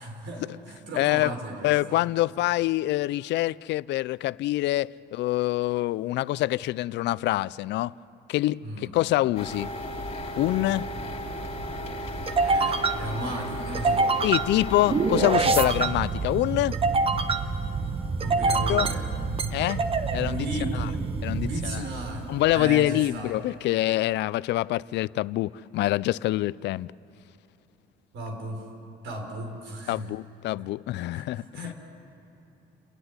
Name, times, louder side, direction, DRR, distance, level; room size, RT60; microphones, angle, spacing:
voice 1, 0.0-2.0 8.6-9.1 12.4-14.2 18.2-19.1 20.2-21.0 21.4-22.2 22.5-23.4 28.1-28.6 29.0-30.1 31.1-31.7, right 1 dB, 80° right, 4.7 m, -35 dB
voice 2, 0.9-1.3 1.6-7.9 8.3-9.7 10.4-10.9 14.2-16.8 18.7-18.9 19.5-19.8 20.1-20.5 20.7-20.9 21.2-21.8 22.3-26.9 29.9-31.7, left 16 dB, 70° left, 0.4 m, -25 dB
sound 1, 9.4-15.4, left 1 dB, 35° left, 3.3 m, -35 dB
sound 2, 9.9-22.7, right 4 dB, 30° right, 1.0 m, -27 dB
30.0 x 11.5 x 9.6 m
cardioid pair, 115°, 19 cm